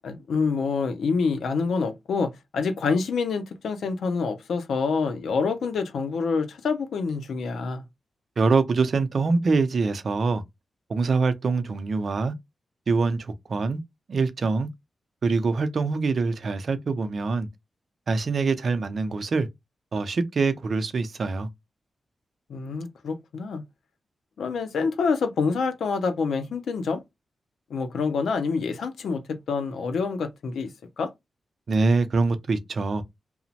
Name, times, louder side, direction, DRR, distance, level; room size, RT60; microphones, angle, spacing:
voice 1, 0.0-7.8 22.5-23.6 24.4-27.0 27.7-30.7 31.0-31.1, left 4 dB, 90° left, 0.5 m, -27 dB
voice 2, 8.4-10.4 10.9-12.3 12.9-13.8 14.1-14.7 15.2-17.5 18.1-19.5 19.9-21.5 31.7-33.0, right 4 dB, 55° right, 0.5 m, -24 dB
2.9 x 2.0 x 2.8 m
wide cardioid pair, 115°, 0 cm